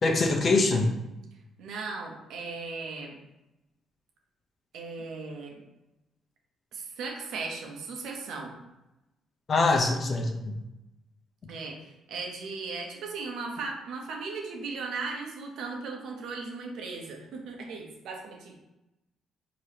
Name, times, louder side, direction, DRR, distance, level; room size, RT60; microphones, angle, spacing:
voice 1, 0.0-0.9 9.5-10.5, left 3 dB, 45° left, 2 dB, 0.7 m, -24 dB
voice 2, 1.6-3.2 4.7-5.5 6.7-8.5 11.5-18.5, right 4 dB, 80° right, 1 dB, 0.8 m, -37 dB
4.8 x 3.0 x 2.9 m, 0.95 s
cardioid pair, 75°, 0 cm